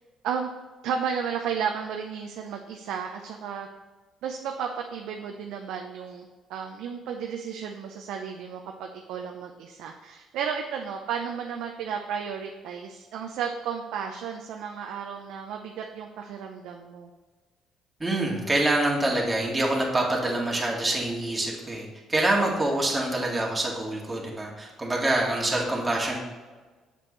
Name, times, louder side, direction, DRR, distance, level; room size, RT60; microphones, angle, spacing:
voice 1, 0.8-3.7 4.2-17.1, right 7 dB, 80° right, 3 dB, 0.6 m, -33 dB
voice 2, 18.0-26.2, right 1 dB, 15° right, -2 dB, 2.0 m, -26 dB
7.6 x 6.9 x 3.1 m, 1.3 s
cardioid pair, 95°, 0 cm